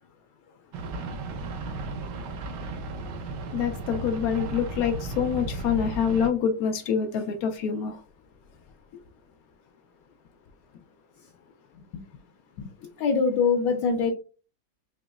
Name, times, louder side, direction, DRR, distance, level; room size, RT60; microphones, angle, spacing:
sound 1, 0.7-6.3, right 2 dB, 70° right, 1.2 m, -34 dB
voice 1, 3.5-8.0 12.8-12.9, left 7 dB, 90° left, 0.8 m, -26 dB
voice 2, 13.0-14.1, left 5 dB, 70° left, 1.2 m, -23 dB
5.0 x 2.9 x 2.4 m
omnidirectional pair, 2.2 m